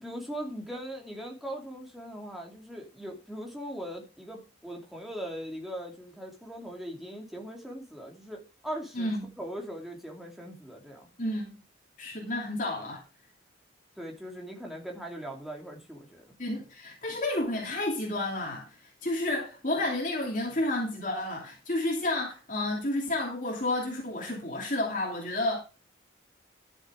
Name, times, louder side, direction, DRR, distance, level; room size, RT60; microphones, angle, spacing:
voice 1, 0.0-11.1 14.0-16.4, equal, ahead, 2.8 m, -40 dB
voice 2, 8.9-9.3 11.2-11.5 12.0-13.0 16.4-25.6, left 1 dB, 40° left, 2.9 m, -31 dB
12.5 x 7.1 x 4.9 m
head